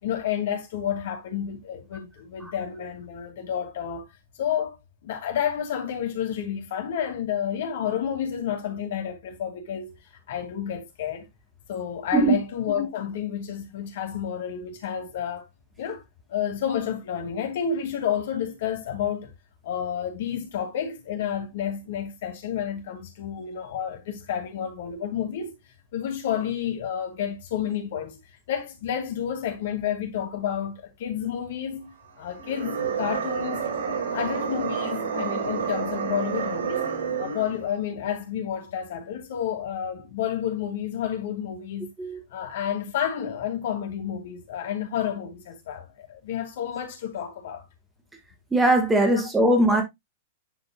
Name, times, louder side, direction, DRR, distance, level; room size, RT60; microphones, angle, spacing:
voice 1, 0.0-4.1 4.4-9.9 10.3-11.3 11.7-15.5 15.8-16.0 16.3-19.3 19.6-25.5 25.9-28.2 28.5-33.7 34.0-36.9 37.2-41.9 42.3-47.6 49.1-49.2, left 9 dB, 65° left, 2.8 m, -30 dB
sound 1, 32.3-37.6, right 6 dB, 85° right, 5.7 m, -29 dB
voice 2, 48.5-49.8, right 1 dB, 10° right, 1.9 m, -20 dB
9.5 x 5.1 x 2.4 m
hypercardioid pair, 140°, 0 cm